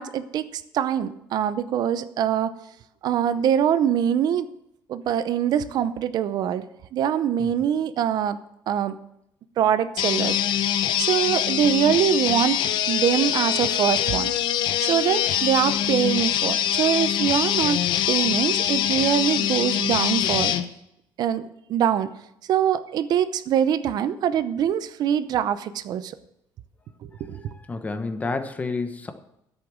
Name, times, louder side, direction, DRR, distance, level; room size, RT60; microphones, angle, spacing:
voice 1, 0.0-2.5 3.0-4.5 4.9-6.6 6.9-8.4 8.7-9.0 9.6-10.4 11.0-12.6 12.9-14.3 14.8-17.8 18.1-20.5 21.2-22.1 22.5-26.1 27.0-27.4, right 9 dB, 55° right, 13 dB, 0.7 m, -23 dB
sound 1, 10.0-20.6, left 10 dB, 70° left, 0.8 m, -24 dB
voice 2, 27.5-29.1, left 3 dB, 20° left, 9 dB, 1.0 m, -30 dB
10.0 x 8.2 x 6.2 m, 0.79 s
cardioid pair, 145°, 8 cm